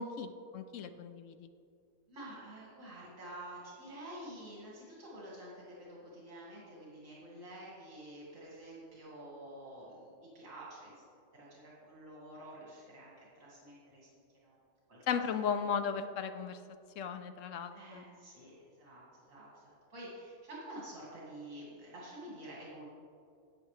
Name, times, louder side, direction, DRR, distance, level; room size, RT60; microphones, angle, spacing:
voice 1, 0.0-1.5 15.1-16.6 17.0-18.0, left 6 dB, 70° left, 10 dB, 0.8 m, -36 dB
voice 2, 2.1-11.0 11.3-14.6 14.9-15.2 17.7-22.8, right 1 dB, 55° right, -7 dB, 2.5 m, -49 dB
13.0 x 8.2 x 3.2 m, 2.4 s
omnidirectional pair, 1.6 m